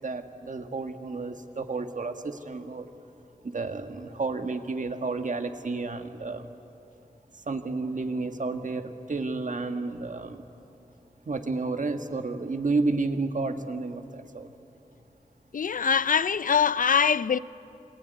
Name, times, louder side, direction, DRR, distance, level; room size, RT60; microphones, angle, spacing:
voice 1, 0.0-2.9 3.5-6.5 7.5-10.4 11.3-14.5, right 3 dB, 65° right, 1.6 m, -31 dB
voice 2, 15.5-17.4, left 7 dB, 75° left, 0.5 m, -23 dB
27.5 x 20.5 x 9.4 m
wide cardioid pair, 70°, 14 cm